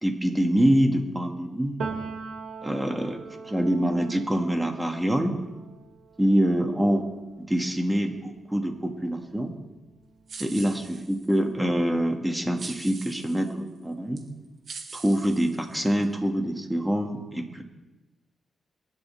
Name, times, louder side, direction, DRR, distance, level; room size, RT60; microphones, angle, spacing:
voice 1, 0.0-1.8 2.6-3.2 3.4-5.3 6.2-7.1 7.4-9.5 10.4-14.2 14.9-17.6, equal, 10° right, 2 dB, 2.3 m, -25 dB
Piano, 1.8-9.4 9.8-11.3, right 5 dB, 85° right, 2.2 m, -42 dB
sound 1, 10.3-11.4 12.6-13.5 14.2-14.3 14.7-16.0, right 5 dB, 65° right, 1.8 m, -42 dB
23.0 x 10.5 x 3.6 m, 1.1 s
cardioid pair, 80°, 0 cm